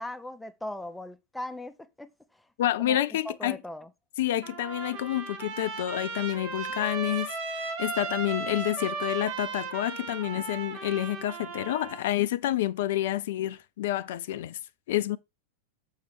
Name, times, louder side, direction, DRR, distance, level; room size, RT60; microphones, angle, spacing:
voice 1, 0.0-2.5 2.8-3.9, left 1 dB, 5° left, 0.7 m, -39 dB
voice 2, 2.6-3.6 4.2-14.6 14.9-15.2, left 13 dB, 55° left, 0.4 m, -29 dB
Trumpet, 4.4-12.0, right 4 dB, 45° right, 1.8 m, -36 dB
6.7 x 5.5 x 4.8 m
figure-of-eight pair, 90°, 0 cm